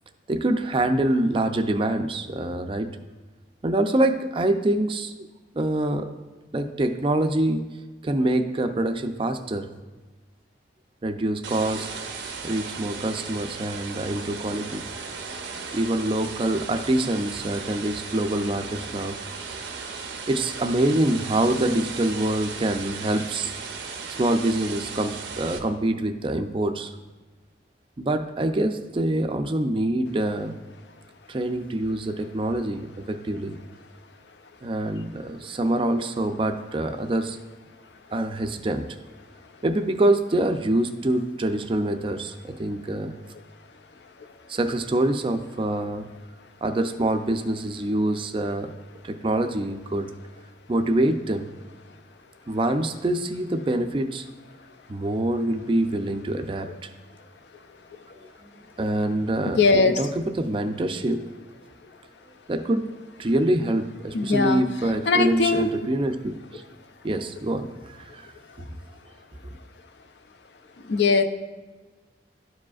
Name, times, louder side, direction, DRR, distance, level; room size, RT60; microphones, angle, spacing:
voice 1, 0.3-2.9 3.6-5.3 5.5-6.1 6.5-7.6 8.0-9.7 11.0-11.9 12.4-14.8 15.7-19.2 20.3-23.5 24.2-26.9 28.0-30.6 31.3-33.6 34.6-37.4 38.1-38.9 39.6-43.1 44.5-46.1 46.6-48.7 49.0-50.1 50.7-51.6 52.5-54.2 54.9-56.9 58.8-61.2 62.5-62.8 63.2-66.6 67.0-68.3 68.6-68.7 69.4-69.5, right 1 dB, 30° right, 7 dB, 0.4 m, -25 dB
sound 1, 11.4-25.6, right 5 dB, 85° right, 0.8 m, -36 dB
voice 2, 57.5-58.3 59.5-60.0 64.1-64.6 65.1-65.9 68.5-68.6 70.8-71.2, left 4 dB, 70° left, 8 dB, 0.5 m, -22 dB
12.5 x 4.9 x 2.4 m, 1.3 s
head